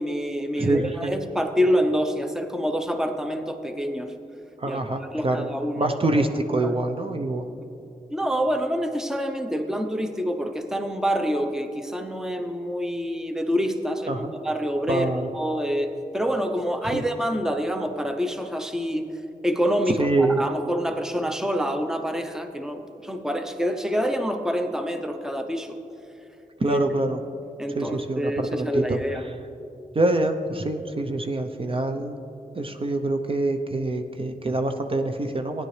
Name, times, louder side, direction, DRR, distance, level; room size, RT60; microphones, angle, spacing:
voice 1, 0.0-4.1 4.7-4.8 5.1-6.2 6.6-6.7 8.1-19.1 19.4-25.8 26.7-26.8 27.6-29.3, equal, 5° right, 6 dB, 0.7 m, -27 dB
voice 2, 0.6-1.1 4.6-5.5 5.8-7.4 14.1-14.3 14.9-15.3 16.9-17.0 20.0-20.4 26.6-27.2 27.7-29.0 29.9-32.1 32.5-35.7, right 2 dB, 40° right, 5 dB, 0.7 m, -25 dB
15.5 x 10.0 x 3.2 m, 2.8 s
wide cardioid pair, 85°, 15 cm